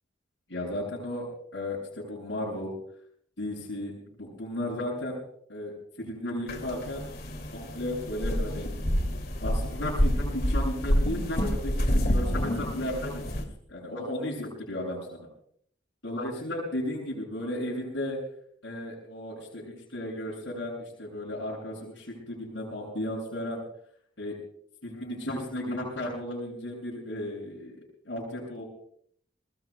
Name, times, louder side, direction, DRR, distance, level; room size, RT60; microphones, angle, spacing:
voice 1, 0.5-2.7 3.4-5.2 5.5-7.1 7.5-8.7 9.4-15.3 16.0-18.2 18.6-23.6 24.2-24.4 24.8-27.8 28.0-28.6, left 1 dB, 80° left, -6 dB, 7.4 m, -34 dB
sound 1, 6.5-13.5, equal, 55° left, 2.5 m, -28 dB
25.0 x 21.0 x 2.3 m, 0.64 s
head